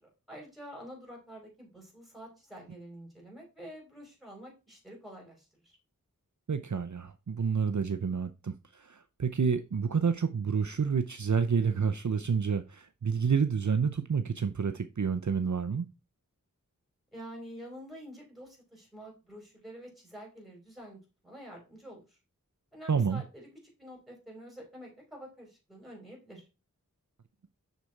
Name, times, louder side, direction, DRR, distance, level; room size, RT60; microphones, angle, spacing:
voice 1, 0.3-5.8 17.1-21.0 21.2-22.0 22.7-23.5 23.8-26.4, equal, ahead, 5.1 m, -48 dB
voice 2, 6.5-15.9 22.9-23.2, right 6 dB, 60° right, 0.6 m, -29 dB
6.8 x 6.5 x 4.5 m
wide cardioid pair, 40°, 33 cm